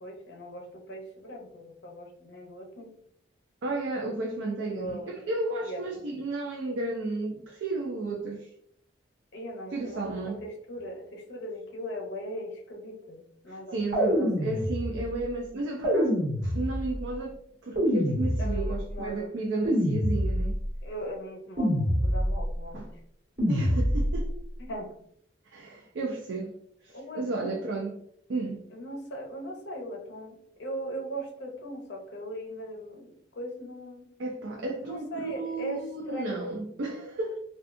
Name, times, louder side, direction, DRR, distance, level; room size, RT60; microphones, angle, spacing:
voice 1, 0.0-2.9 4.7-5.3 5.6-5.8 9.3-14.5 18.4-19.3 20.8-22.8 23.4-23.5 24.6-24.9 26.9-27.7 28.7-34.0 34.7-35.8 36.1-36.6, equal, 65° left, 0.7 m, -39 dB
voice 2, 3.6-8.5 9.7-10.4 13.5-17.4 17.6-20.5 22.7-22.9 23.5-24.3 25.5-26.5 26.8-27.9 28.3-28.6 34.2-37.4, right 2 dB, 70° right, 0.4 m, -33 dB
sound 1, 13.9-15.1 15.8-17.0 17.7-18.9 19.6-20.7 21.6-22.5 23.4-24.3, equal, 55° right, 1.1 m, -26 dB
2.6 x 2.2 x 2.5 m
head